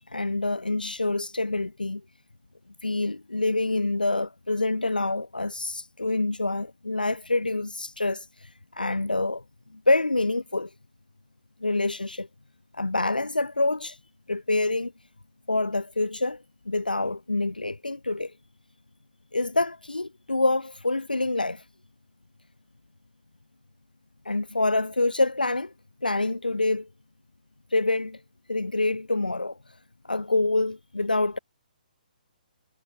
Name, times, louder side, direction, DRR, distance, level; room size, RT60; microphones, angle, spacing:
voice 1, 0.1-2.0 2.8-9.4 9.9-10.7 11.6-12.3 12.7-14.0 14.3-14.9 15.5-18.3 19.3-21.6 24.2-25.7 26.0-26.9 27.7-28.2 28.5-29.6 30.1-31.4, left 2 dB, 80° left, 3.2 m, -26 dB
figure-of-eight pair, 130°, 5 cm